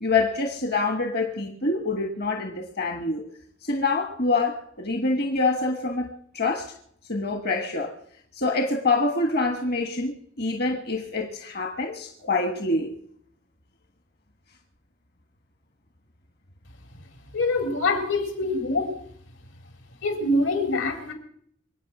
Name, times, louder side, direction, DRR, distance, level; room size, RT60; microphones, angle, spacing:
voice 1, 0.0-3.2 3.6-6.7 7.1-7.9 8.3-13.0, left 3 dB, 55° left, 4 dB, 1.4 m, -26 dB
voice 2, 17.3-19.0 20.0-21.1, left 2 dB, 80° left, 4 dB, 3.7 m, -24 dB
24.5 x 8.9 x 6.0 m, 0.66 s
head